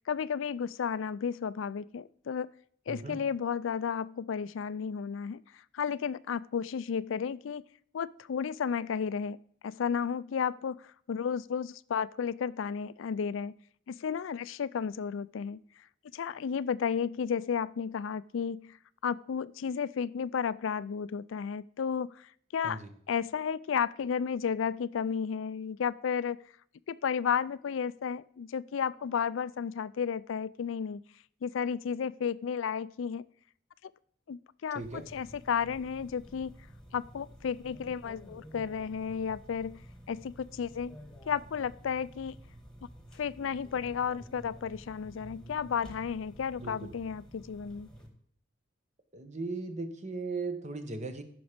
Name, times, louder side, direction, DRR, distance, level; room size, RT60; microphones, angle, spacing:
voice 1, 0.1-2.5 2.9-7.6 7.9-9.4 9.6-13.5 13.9-15.6 16.1-18.8 19.0-22.8 23.1-26.4 26.9-31.0 31.4-33.2 34.3-36.5 36.9-39.8 40.1-41.0 41.3-42.4 43.1-47.9, left 7 dB, 85° left, 18 dB, 0.4 m, -33 dB
voice 2, 2.9-3.2 22.6-22.9 34.7-35.1 46.5-46.7 49.1-51.2, right 3 dB, 40° right, 8 dB, 1.2 m, -37 dB
sound 1, 34.8-48.1, equal, 5° left, 1.8 m, -51 dB
14.5 x 6.0 x 5.1 m, 0.63 s
head